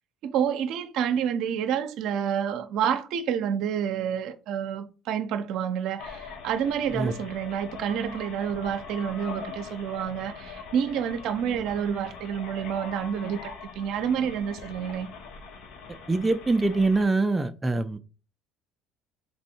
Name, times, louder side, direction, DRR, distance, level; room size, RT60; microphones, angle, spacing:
voice 1, 0.2-15.1, right 8 dB, 65° right, 0.5 m, -29 dB
sound 1, 6.0-17.0, left 5 dB, 70° left, 0.8 m, -42 dB
voice 2, 16.1-18.0, right 3 dB, 15° right, 0.4 m, -24 dB
3.5 x 2.6 x 4.3 m
supercardioid pair, 85°, 0 cm